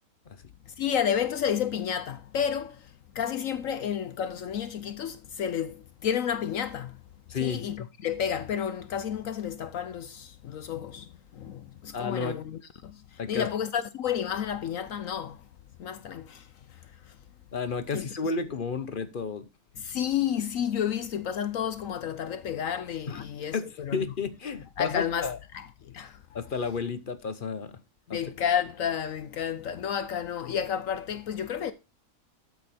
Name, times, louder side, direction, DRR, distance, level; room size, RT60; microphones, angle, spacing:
voice 1, 0.8-2.8 3.1-7.0 7.4-13.0 13.3-15.4 15.8-16.4 17.9-18.1 19.8-24.1 24.8-26.2 28.1-31.7, left 8 dB, 65° left, 1.1 m, -31 dB
voice 2, 7.3-7.9 11.9-12.4 13.2-13.5 17.5-19.5 23.1-23.2 23.5-25.4 26.3-27.8 28.1-28.2, left 5 dB, 40° left, 0.9 m, -32 dB
13.0 x 5.2 x 4.2 m
omnidirectional pair, 1.6 m